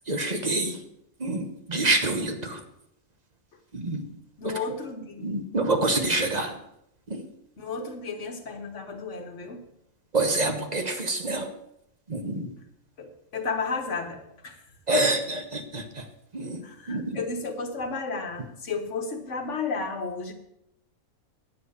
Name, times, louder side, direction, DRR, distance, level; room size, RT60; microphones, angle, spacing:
voice 1, 0.1-0.8 1.2-2.6 3.7-4.1 4.4-4.6 5.2-6.6 7.1-7.2 10.1-11.5 12.1-12.5 14.9-16.0 16.3-17.2, right 2 dB, 30° right, 6 dB, 1.1 m, -27 dB
voice 2, 4.4-5.3 7.6-9.6 13.0-14.6 16.6-20.3, left 4 dB, 55° left, 5 dB, 1.7 m, -33 dB
9.9 x 7.9 x 6.7 m, 0.79 s
omnidirectional pair, 1.5 m